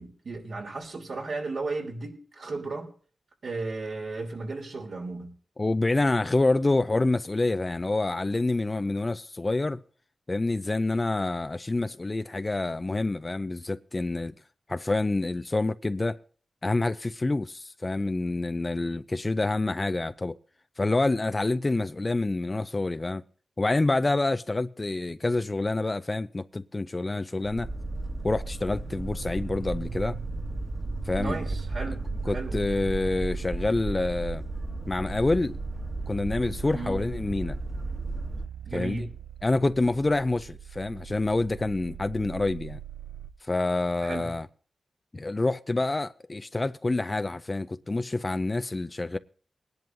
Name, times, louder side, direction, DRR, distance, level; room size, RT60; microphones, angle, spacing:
voice 1, 0.0-2.9 3.4-5.3 31.2-32.6 36.7-37.0 38.6-39.1 44.0-44.3, right 3 dB, 70° right, 3.2 m, -35 dB
voice 2, 5.6-9.8 10.3-14.3 14.7-16.2 16.6-20.4 20.8-23.2 23.6-27.7 28.2-30.2 31.1-31.4 32.3-34.4 34.9-35.6 36.1-37.6 38.7-39.1 39.4-42.8 43.5-44.5 45.1-49.2, left 2 dB, 35° left, 0.5 m, -27 dB
Boat Water vehicle, 27.4-38.5, right 2 dB, 25° right, 1.6 m, -35 dB
sound 1, 28.8-43.3, right 7 dB, 85° right, 0.6 m, -41 dB
21.0 x 10.5 x 2.6 m
cardioid pair, 55°, 0 cm